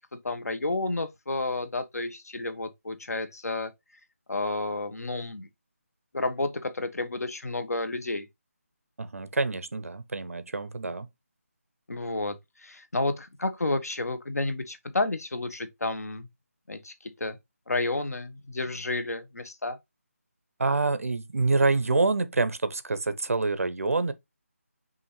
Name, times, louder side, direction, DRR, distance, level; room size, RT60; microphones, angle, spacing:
voice 1, 0.1-3.7 4.3-5.5 6.1-8.3 11.9-16.3 16.7-17.4 17.7-19.8, left 2 dB, 85° left, 1.0 m, -31 dB
voice 2, 9.0-11.1 20.6-24.1, right 3 dB, 65° right, 0.6 m, -26 dB
5.6 x 2.6 x 3.1 m
figure-of-eight pair, 175°, 8 cm